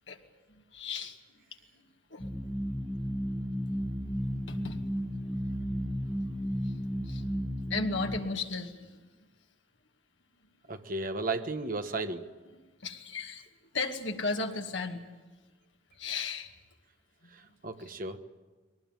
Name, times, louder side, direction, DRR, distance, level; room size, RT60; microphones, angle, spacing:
voice 1, 0.5-1.2 2.1-2.3 4.5-4.8 5.3-5.5 6.6-7.2 7.7-9.0 12.8-13.5 13.7-15.0 16.0-16.5 17.8-17.9, left 3 dB, 75° left, 4 dB, 2.2 m, -35 dB
sound 1, 2.2-8.2, equal, 5° left, 0.8 m, -33 dB
voice 2, 10.7-12.3 17.3-18.2, right 3 dB, 45° right, 7 dB, 1.3 m, -34 dB
22.0 x 18.5 x 9.2 m, 1.3 s
head